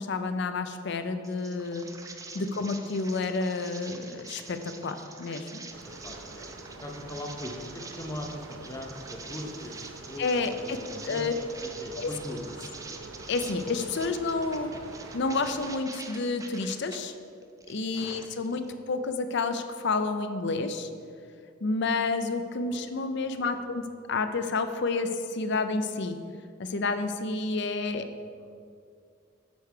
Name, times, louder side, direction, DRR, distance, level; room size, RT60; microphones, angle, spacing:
voice 1, 0.0-1.9 2.3-5.6 10.2-10.8 11.0-11.3 12.0-12.1 13.3-14.7 15.1-17.1 17.7-20.9 21.6-26.2 26.6-28.1, left 3 dB, 60° left, 8 dB, 0.6 m, -30 dB
sound 1, 1.2-17.0 17.4-18.7, right 4 dB, 15° right, 0.5 m, -46 dB
voice 2, 5.7-9.8 10.0-12.4 18.0-18.2 22.7-22.8 23.3-23.6 28.2-28.5, left 1 dB, 15° left, 1 dB, 0.8 m, -41 dB
sound 2, 5.7-15.8, right 2 dB, 80° right, 0.8 m, -46 dB
8.2 x 4.6 x 6.6 m, 2.3 s
head